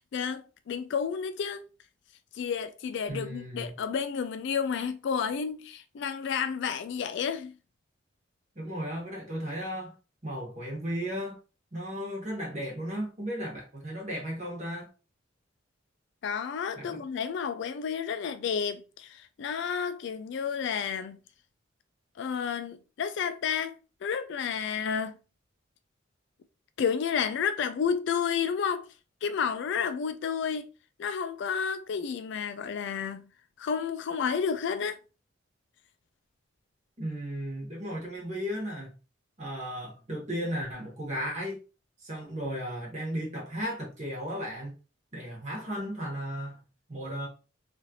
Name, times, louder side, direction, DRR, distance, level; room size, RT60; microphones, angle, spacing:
voice 1, 0.0-1.6 2.3-7.5 16.2-21.2 22.2-25.2 26.8-28.9 29.2-30.7 31.0-33.3 33.6-35.0, left 6 dB, 60° left, 0.3 m, -31 dB
voice 2, 3.1-3.7 8.5-9.9 10.2-11.4 11.7-14.9 16.7-17.0 37.0-38.9 39.4-41.6 42.0-44.8 45.1-46.6 46.9-47.3, equal, 35° right, 1.2 m, -35 dB
3.1 x 2.5 x 2.8 m
head